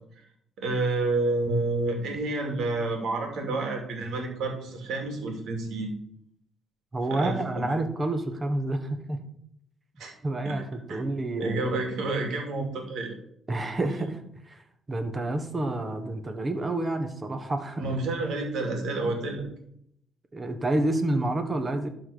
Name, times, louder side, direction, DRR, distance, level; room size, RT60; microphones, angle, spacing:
voice 1, 0.6-5.9 7.1-7.7 10.0-10.1 10.4-10.6 10.9-11.0 11.4-13.1 17.8-19.5, right 2 dB, 75° right, 3 dB, 2.5 m, -29 dB
voice 2, 6.9-9.2 10.2-11.8 13.5-14.6 14.9-17.9 20.3-21.9, right 2 dB, 30° right, 7 dB, 1.3 m, -29 dB
12.0 x 4.3 x 5.1 m, 0.72 s
cardioid pair, 90°, 0 cm